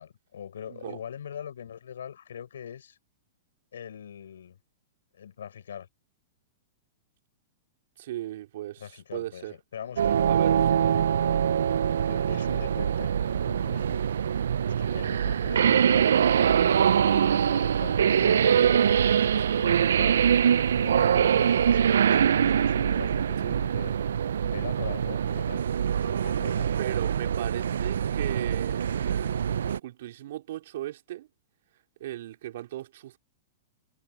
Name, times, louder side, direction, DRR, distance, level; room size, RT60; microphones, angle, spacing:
voice 1, 0.0-3.0 3.7-4.6 5.1-5.9 8.8-11.4 12.1-14.0 14.6-20.3 20.8-24.0 24.4-25.7 26.0-26.7, left 8 dB, 85° left, 4.3 m, -42 dB
voice 2, 0.7-1.0 8.0-9.6 10.3-10.7 19.4-19.6 23.4-23.6 26.8-31.3 32.0-33.2, right 14 dB, 65° right, 4.1 m, -37 dB
sound 1, 10.0-29.8, right 8 dB, 85° right, 0.3 m, -24 dB
hypercardioid pair, 140°, 0 cm